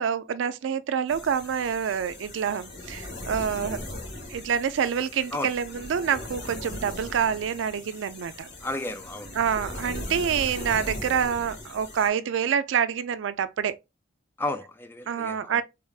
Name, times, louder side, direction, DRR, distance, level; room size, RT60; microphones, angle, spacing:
voice 1, 0.0-3.8 4.3-8.5 9.3-13.8 15.1-15.6, right 7 dB, 80° right, 0.4 m, -27 dB
sound 1, 1.1-12.1, left 1 dB, 60° left, 1.6 m, -39 dB
voice 2, 8.6-9.3 14.4-15.6, left 2 dB, 10° left, 0.4 m, -33 dB
3.5 x 3.3 x 2.3 m
head